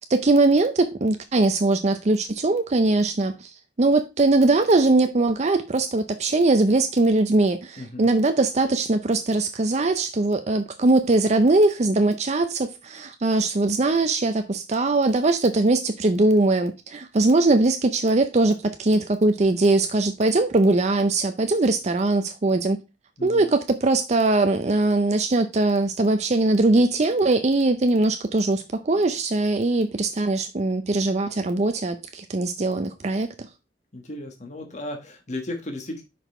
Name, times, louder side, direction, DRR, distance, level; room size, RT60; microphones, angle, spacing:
voice 1, 0.1-3.5 3.8-22.8 23.2-33.3, right 2 dB, 40° right, 0.5 m, -21 dB
voice 2, 7.8-8.1 23.2-23.5 33.9-36.0, left 1 dB, 40° left, 1.3 m, -35 dB
5.9 x 5.1 x 4.3 m
head